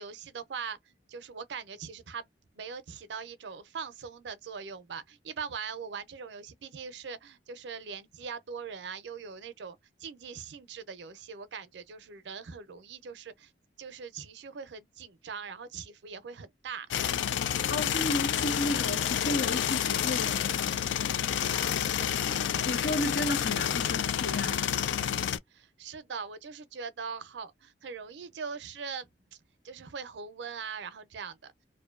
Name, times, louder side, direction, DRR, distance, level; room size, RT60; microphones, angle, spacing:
voice 1, 0.0-2.3 2.5-13.5 13.8-16.9 21.5-22.4 25.5-29.1 29.6-31.5, right 6 dB, 70° right, 0.5 m, -41 dB
sound 1, 16.9-25.4, left 9 dB, 90° left, 0.3 m, -29 dB
voice 2, 17.6-20.8 22.6-24.7, left 1 dB, 65° left, 0.8 m, -33 dB
2.6 x 2.1 x 2.3 m
head